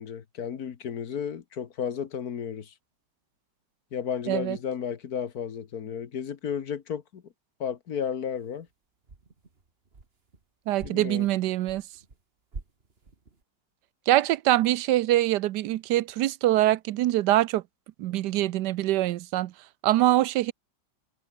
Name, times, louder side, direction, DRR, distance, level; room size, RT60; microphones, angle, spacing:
voice 1, 0.0-2.7 3.9-7.2 7.6-8.7 10.8-11.3, left 7 dB, 55° left, 1.8 m, -33 dB
voice 2, 4.3-4.6 10.7-11.8 14.1-17.6 18.0-19.5 19.8-20.5, right 15 dB, 75° right, 1.2 m, -24 dB
sound 1, 8.4-8.7 9.0-10.4 10.8-12.2 12.5-13.4, right 3 dB, 30° right, 2.4 m, -46 dB
omnidirectional pair, 2.0 m